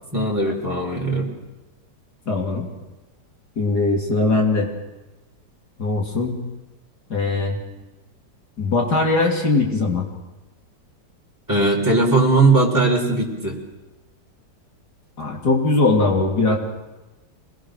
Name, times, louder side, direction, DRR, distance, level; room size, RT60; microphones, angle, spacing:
voice 1, 0.1-1.3 11.5-13.6, right 2 dB, 10° right, -3 dB, 4.0 m, -19 dB
voice 2, 2.3-2.7 3.6-4.7 5.8-6.4 7.1-7.6 8.6-10.1 15.2-16.6, left 3 dB, 65° left, 0 dB, 3.5 m, -20 dB
27.5 x 20.0 x 6.5 m, 1.1 s
omnidirectional pair, 1.9 m